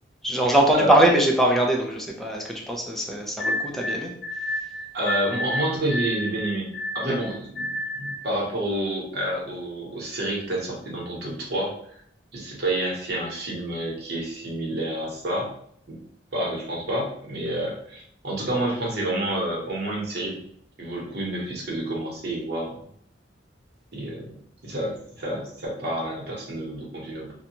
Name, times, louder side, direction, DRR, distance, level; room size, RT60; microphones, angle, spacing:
voice 1, 0.2-4.1 7.0-7.1, right 1 dB, ahead, -1 dB, 0.4 m, -22 dB
sound 1, 3.4-8.3, left 1 dB, 65° left, 0.4 m, -30 dB
voice 2, 4.9-6.7 6.9-12.0 12.3-15.5 15.9-16.0 16.3-20.4 20.8-22.8 23.9-24.4 24.6-27.3, right 1 dB, 60° right, -3 dB, 1.0 m, -29 dB
2.6 x 2.3 x 2.9 m, 0.66 s
head